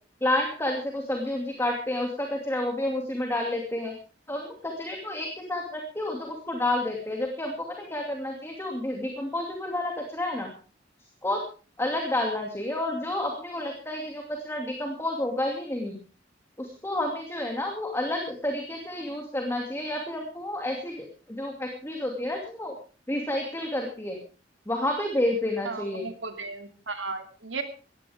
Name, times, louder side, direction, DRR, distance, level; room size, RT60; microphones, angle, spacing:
voice 1, 0.2-3.9 4.3-10.5 11.2-11.4 11.8-16.0 16.6-22.7 23.1-24.2 24.7-26.1, left 1 dB, 15° left, 2 dB, 2.5 m, -30 dB
voice 2, 25.6-27.6, right 4 dB, 90° right, 6 dB, 2.5 m, -35 dB
19.0 x 15.0 x 3.6 m, 0.37 s
head